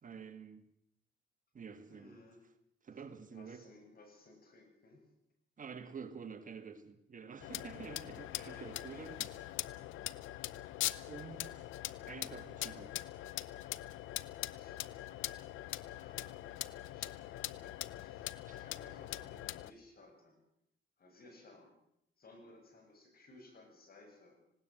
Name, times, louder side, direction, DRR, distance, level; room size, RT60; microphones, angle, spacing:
voice 1, 0.0-0.6 1.5-2.2 2.8-3.6 5.6-9.5 11.1-11.7 12.0-12.9 18.4-18.6, right 6 dB, 40° right, 10 dB, 1.8 m, -49 dB
voice 2, 1.9-2.4 3.3-5.0 8.3-10.1 14.5-20.4 21.0-21.8 22.2-24.4, left 2 dB, 50° left, 4 dB, 7.8 m, -60 dB
sound 1, 7.4-19.7, left 15 dB, 90° left, 0.7 m, -42 dB
19.5 x 17.5 x 7.8 m, 0.76 s
cardioid pair, 90°, 20 cm